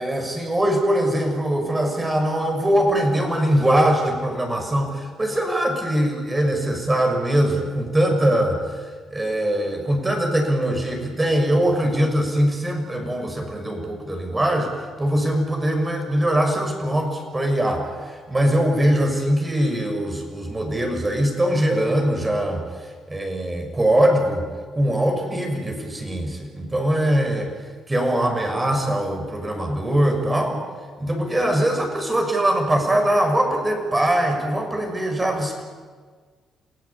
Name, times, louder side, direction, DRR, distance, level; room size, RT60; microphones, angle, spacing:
voice 1, 0.0-24.5 24.7-27.5 27.9-30.6 31.0-35.6, right 1 dB, 20° right, 4 dB, 6.3 m, -22 dB
28.0 x 18.0 x 8.6 m, 1.6 s
cardioid pair, 90°, 0 cm